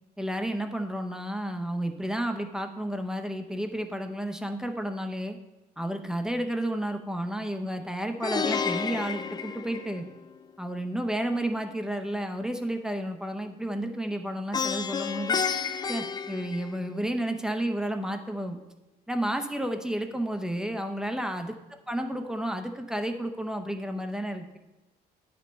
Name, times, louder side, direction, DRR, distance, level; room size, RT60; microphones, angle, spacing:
voice 1, 0.2-5.4 5.8-10.0 10.6-15.4 15.9-18.6 19.1-21.5 21.9-24.6, right 1 dB, 5° right, 6 dB, 0.7 m, -31 dB
Plucked string instrument, 8.2-10.4 14.5-17.1, left 6 dB, 25° left, 0.4 m, -31 dB
9.6 x 5.3 x 4.4 m, 1.0 s
cardioid pair, 110°, 17 cm